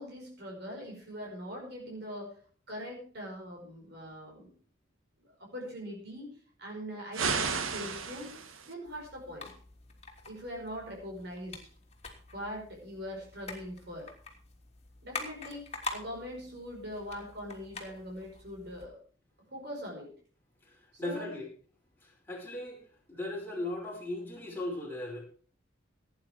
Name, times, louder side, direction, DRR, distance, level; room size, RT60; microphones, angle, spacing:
voice 1, 0.0-2.3 2.7-4.5 5.4-6.3 6.6-8.3 8.6-9.5 10.3-11.6 12.3-14.1 15.0-15.7 15.9-19.0 19.5-20.1 20.9-21.3, equal, 50° right, 0 dB, 5.2 m, -42 dB
sound 1, 7.1-8.7, right 5 dB, 80° right, 1.8 m, -33 dB
sound 2, 8.8-18.9, left 3 dB, 30° left, 3.0 m, -46 dB
voice 2, 21.0-21.5 22.0-22.8 23.1-25.2, left 1 dB, 10° left, -1 dB, 4.9 m, -37 dB
18.0 x 9.7 x 4.5 m, 0.43 s
head